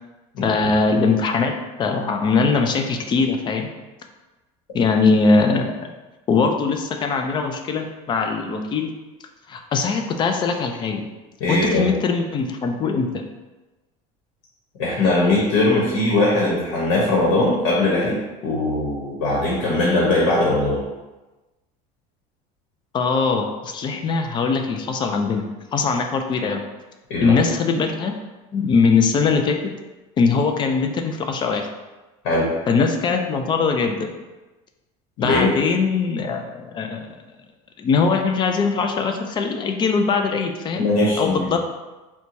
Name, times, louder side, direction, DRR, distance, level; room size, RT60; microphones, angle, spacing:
voice 1, 0.4-3.7 4.7-5.9 6.3-8.9 9.5-11.0 11.5-13.2 22.9-25.5 25.7-26.6 27.2-28.1 28.5-29.6 30.2-31.7 32.7-34.1 35.2-37.0 37.8-40.9 41.2-41.6, left 4 dB, 25° left, 5 dB, 0.3 m, -21 dB
voice 2, 11.4-11.9 14.8-20.8 27.1-27.4 32.2-32.5 35.2-35.5 40.7-41.5, left 2 dB, 80° left, -4 dB, 1.0 m, -20 dB
4.3 x 2.2 x 2.7 m, 1.1 s
cardioid pair, 135°, 17 cm